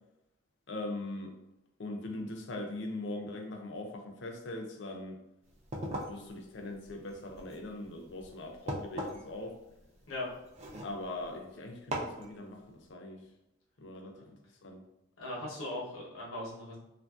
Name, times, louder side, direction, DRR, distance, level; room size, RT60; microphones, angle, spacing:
voice 1, 0.7-1.3 1.8-5.2 6.1-9.5 10.8-13.2 13.8-14.1 14.6-14.8, left 2 dB, 60° left, 3 dB, 0.5 m, -41 dB
sound 1, 5.5-11.4 11.9-12.3, right 1 dB, 30° right, 0.3 m, -41 dB
voice 2, 15.2-16.8, left 1 dB, 85° left, -4 dB, 0.9 m, -39 dB
2.9 x 2.5 x 2.3 m, 0.89 s
head